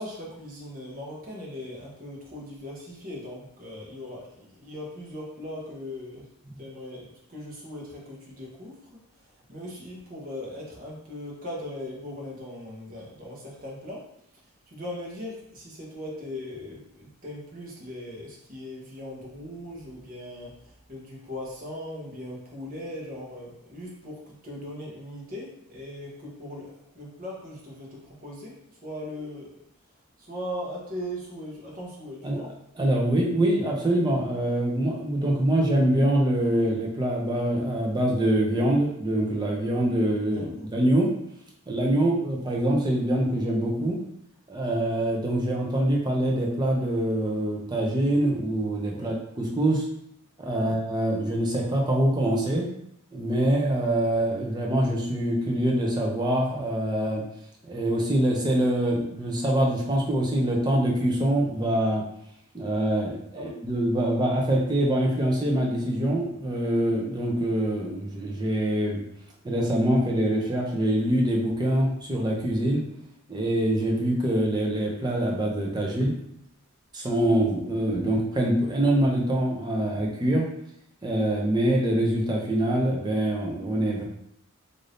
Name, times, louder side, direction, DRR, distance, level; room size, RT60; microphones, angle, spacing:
voice 1, 0.0-6.3 6.6-8.8 9.2-14.1 14.7-29.6 30.2-32.6 40.3-40.5 41.9-42.1 48.9-49.1 50.6-50.8 63.3-63.5 77.4-77.5, left 1 dB, 40° right, -4 dB, 0.9 m, -39 dB
voice 2, 32.8-41.1 41.7-44.0 44.5-49.9 50.4-52.7 53.1-57.2 57.6-62.0 62.5-69.0 69.4-72.8 73.3-76.1 76.9-80.5 81.0-84.0, right 1 dB, 20° right, -1 dB, 0.5 m, -24 dB
2.6 x 2.6 x 3.3 m, 0.74 s
head